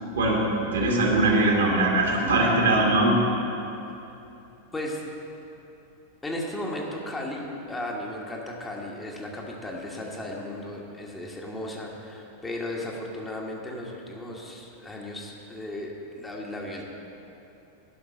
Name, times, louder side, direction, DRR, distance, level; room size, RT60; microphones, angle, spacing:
voice 1, 0.1-3.1, right 2 dB, 65° right, -3 dB, 2.0 m, -21 dB
voice 2, 4.7-5.0 6.2-16.8, left 1 dB, 10° left, -1 dB, 1.3 m, -35 dB
11.5 x 5.8 x 6.0 m, 2.9 s
figure-of-eight pair, 90°, 0 cm